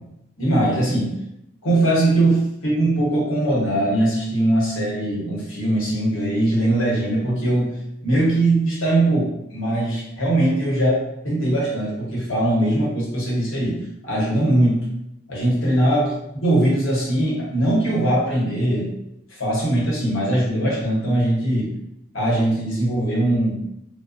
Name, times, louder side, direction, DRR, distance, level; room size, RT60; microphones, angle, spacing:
voice 1, 0.4-1.1 1.6-7.8 8.0-14.9 15.3-18.9 19.3-21.7 22.1-23.6, right 1 dB, 70° left, -6 dB, 1.0 m, -21 dB
2.4 x 2.2 x 2.5 m, 0.83 s
head